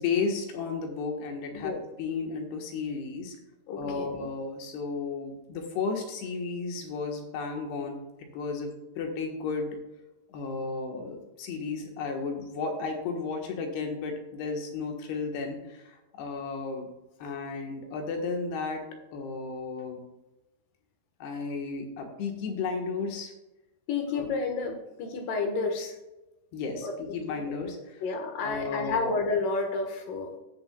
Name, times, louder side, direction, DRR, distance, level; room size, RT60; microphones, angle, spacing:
voice 1, 0.0-3.4 3.8-8.0 8.3-9.8 10.3-16.9 17.2-18.9 19.1-20.0 21.2-23.3 24.1-24.3 26.5-28.0 28.4-29.1, left 4 dB, 90° left, 2 dB, 3.5 m, -33 dB
voice 2, 3.7-4.1 23.9-25.9 26.8-26.9 27.5-27.6 28.0-30.3, left 4 dB, 65° left, 3 dB, 2.8 m, -30 dB
17.0 x 7.1 x 2.3 m, 1.0 s
omnidirectional pair, 4.5 m